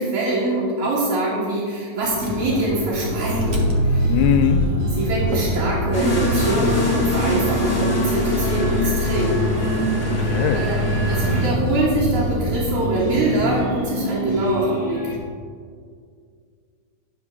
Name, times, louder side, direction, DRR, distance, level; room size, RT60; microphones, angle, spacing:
voice 1, 0.0-4.2 4.9-9.4 10.2-10.8 11.1-15.0, right 1 dB, 80° right, -7 dB, 3.0 m, -24 dB
sound 1, 2.0-15.2, right 1 dB, 30° right, 1.1 m, -28 dB
Motor vehicle (road), 2.1-13.3, equal, 55° right, 0.8 m, -25 dB
voice 2, 4.1-4.6 10.0-10.7, left 8 dB, 90° left, 8 dB, 2.0 m, -21 dB
sound 2, 5.9-11.5, left 1 dB, 15° left, 1.8 m, -25 dB
11.0 x 4.4 x 6.1 m, 2.1 s
omnidirectional pair, 3.4 m